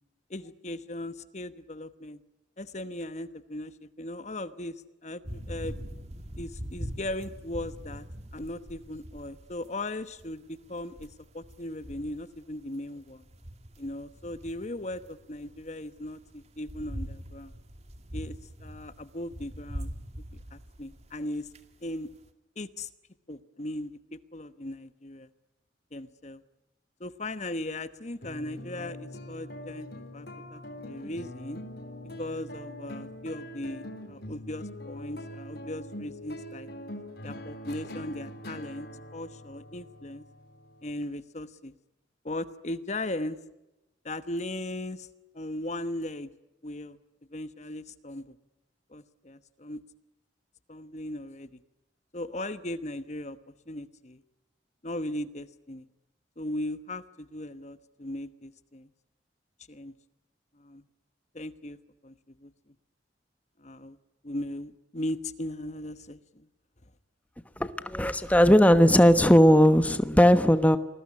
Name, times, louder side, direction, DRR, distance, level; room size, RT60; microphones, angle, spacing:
voice 1, 0.3-2.2 2.6-5.8 6.4-8.1 8.3-13.3 13.8-17.5 18.1-19.9 20.3-21.5 21.8-22.1 22.6-22.9 23.3-25.3 25.9-26.4 27.0-31.6 32.2-36.7 37.2-40.2 40.8-41.7 42.2-43.4 44.0-45.1 45.3-46.3 46.6-47.0 47.3-48.4 48.9-49.8 50.7-51.6 52.1-54.2 54.8-55.9 56.4-58.9 59.7-59.9 60.5-60.8 61.3-61.8 62.0-62.7 63.6-64.0 64.2-66.5, left 1 dB, 40° left, 13 dB, 1.1 m, -38 dB
sound 1, 5.2-22.3, equal, 35° right, 2.3 m, -43 dB
sound 2, 28.2-41.0, left 1 dB, 60° left, 3.6 m, -43 dB
voice 2, 67.6-70.8, equal, 10° left, 11 dB, 1.1 m, -18 dB
28.0 x 20.5 x 9.7 m, 0.98 s
head